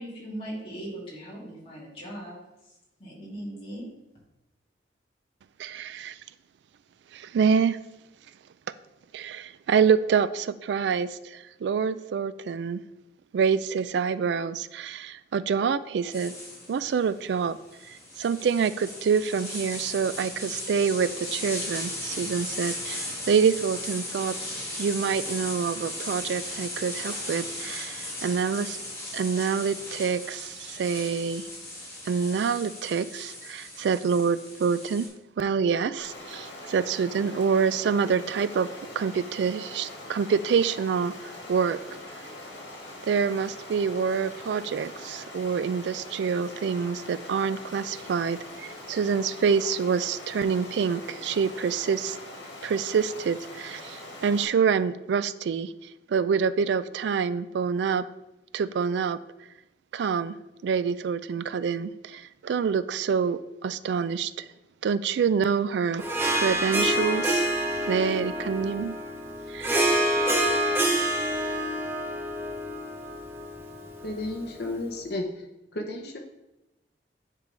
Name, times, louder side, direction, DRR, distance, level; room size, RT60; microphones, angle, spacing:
voice 1, 0.0-2.4 3.0-3.9, right 1 dB, 30° left, -6 dB, 2.4 m, -39 dB
voice 2, 5.6-6.2 7.1-7.8 9.1-12.8 13.3-16.3 16.7-17.6 17.9-24.4 24.8-28.8 29.1-31.5 32.1-35.1 35.4-38.7 39.0-41.1 41.5-41.8 43.0-52.2 52.6-55.7 56.1-58.0 58.5-59.2 59.9-60.4 60.6-64.5 64.8-66.0 66.3-67.5 67.9-69.0 69.5-69.8, right 6 dB, 75° right, 15 dB, 0.3 m, -26 dB
sound 1, 16.1-35.1, left 1 dB, 15° left, 2.0 m, -37 dB
Stream, 36.0-54.5, left 1 dB, 80° left, 1.9 m, -42 dB
Harp, 66.0-74.6, right 1 dB, 15° right, 0.8 m, -27 dB
voice 3, 74.0-75.5 75.7-76.2, left 2 dB, 60° left, 2 dB, 0.8 m, -33 dB
10.0 x 3.8 x 3.3 m, 0.96 s
head